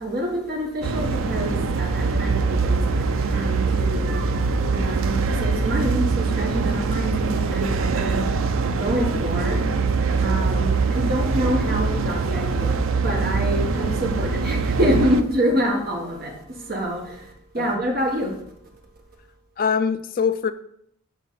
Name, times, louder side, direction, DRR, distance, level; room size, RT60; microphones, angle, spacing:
voice 1, 0.0-4.4 4.7-8.5 8.8-9.7 10.2-18.4, equal, 45° right, 1.4 m, -27 dB
sound 1, 0.8-15.2, right 4 dB, 90° right, 0.5 m, -23 dB
voice 2, 19.6-20.5, left 6 dB, 45° left, 0.3 m, -23 dB
6.1 x 4.0 x 5.6 m
head